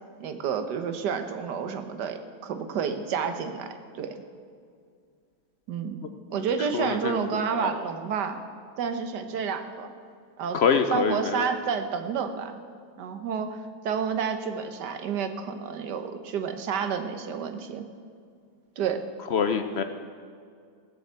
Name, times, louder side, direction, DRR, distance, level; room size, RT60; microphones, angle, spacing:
voice 1, 0.2-4.1 5.7-6.0 6.3-8.4 8.8-9.9 10.4-10.6 10.9-12.6 13.0-17.8 18.8-19.0, right 6 dB, 70° right, 8 dB, 1.6 m, -30 dB
voice 2, 6.7-7.7 10.5-11.5 19.3-19.8, left 6 dB, 90° left, 8 dB, 0.5 m, -25 dB
16.5 x 7.1 x 8.1 m, 2.2 s
omnidirectional pair, 2.0 m